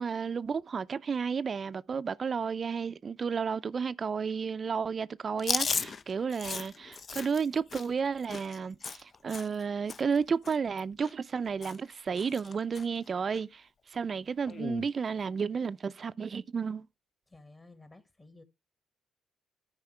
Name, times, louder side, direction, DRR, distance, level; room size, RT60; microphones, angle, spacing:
voice 1, 0.0-13.6 13.9-16.9, right 6 dB, 45° right, 0.5 m, -32 dB
Chewing mastication, 5.4-9.6 9.9-10.2 10.4-11.4 11.6-11.9 12.2-12.9 13.3-13.4 14.5-14.9, left 5 dB, 45° left, 0.4 m, -36 dB
voice 2, 17.3-18.4, left 2 dB, 25° left, 1.7 m, -54 dB
13.0 x 4.9 x 3.3 m
supercardioid pair, 55°, 0 cm